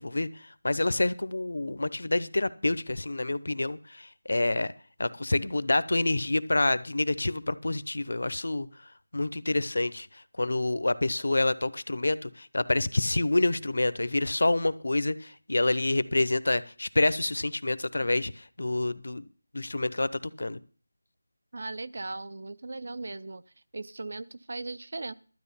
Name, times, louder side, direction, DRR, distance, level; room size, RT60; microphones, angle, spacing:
voice 1, 0.0-4.7 5.0-8.7 9.1-19.2 19.5-20.1 20.4-20.6, left 2 dB, 60° left, 16 dB, 0.8 m, -27 dB
voice 2, 21.5-23.4 23.7-25.1, right 2 dB, 40° right, 15 dB, 0.5 m, -38 dB
12.5 x 9.1 x 5.6 m, 0.40 s
figure-of-eight pair, 180°, 0 cm